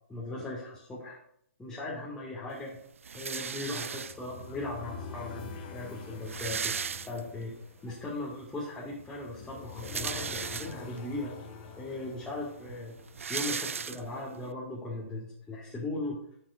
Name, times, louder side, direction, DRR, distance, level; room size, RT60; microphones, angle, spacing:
voice 1, 0.1-1.2 1.6-2.8 3.1-6.8 7.1-7.6 7.8-11.3 11.8-13.0 13.3-16.2, left 2 dB, 10° left, -8 dB, 2.0 m, -38 dB
sound 1, 3.0-4.5 5.3-5.4 5.6-5.7 6.0-7.6 8.0-8.1 9.5-11.0 11.7-11.8 12.0-14.4, right 6 dB, 70° right, 0.4 m, -36 dB
sound 2, 3.7-13.8, left 5 dB, 40° left, 1.6 m, -46 dB
11.0 x 7.6 x 2.6 m, 0.66 s
figure-of-eight pair, 125°, 7 cm